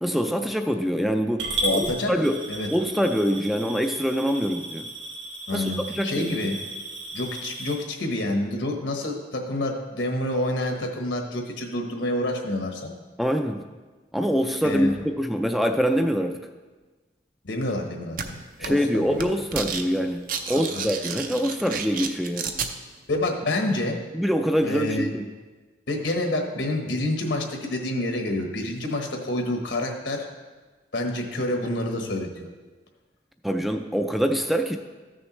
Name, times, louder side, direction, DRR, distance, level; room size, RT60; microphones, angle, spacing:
voice 1, 0.0-2.4 2.7-4.9 5.5-6.3 13.2-13.6 14.1-16.4 18.6-22.5 24.1-25.2 33.4-34.8, equal, ahead, 6 dB, 0.4 m, -24 dB
Coin (dropping) / Glass, 1.4-7.7, right 2 dB, 80° right, 2.0 m, -34 dB
voice 2, 1.6-2.1 2.5-2.7 5.5-6.6 7.1-12.9 14.6-14.9 17.4-19.3 20.5-20.9 23.1-24.0 24.6-25.1 25.9-30.2 30.9-32.5, left 1 dB, 75° left, 2 dB, 1.2 m, -28 dB
sound 1, 18.2-18.3 18.6-18.9 19.2-19.8 20.1-22.7, right 6 dB, 50° right, 0.6 m, -31 dB
14.0 x 6.4 x 3.1 m, 1.3 s
head